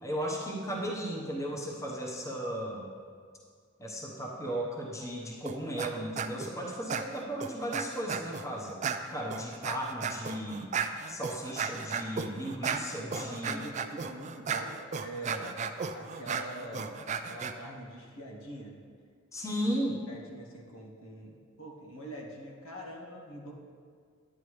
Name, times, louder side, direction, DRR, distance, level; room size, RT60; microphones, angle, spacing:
voice 1, 0.0-2.9 3.8-8.8 9.1-10.7 11.1-13.6 19.3-20.0, equal, 15° left, -2 dB, 1.0 m, -35 dB
sound 1, 5.5-5.9 6.2-6.5 6.9-8.5 8.8-17.5, right 6 dB, 35° right, 0.4 m, -35 dB
voice 2, 13.1-15.5 15.9-17.0 17.3-18.8 20.1-23.5, equal, 80° left, 0 dB, 1.4 m, -44 dB
10.0 x 9.6 x 3.2 m, 2.1 s
head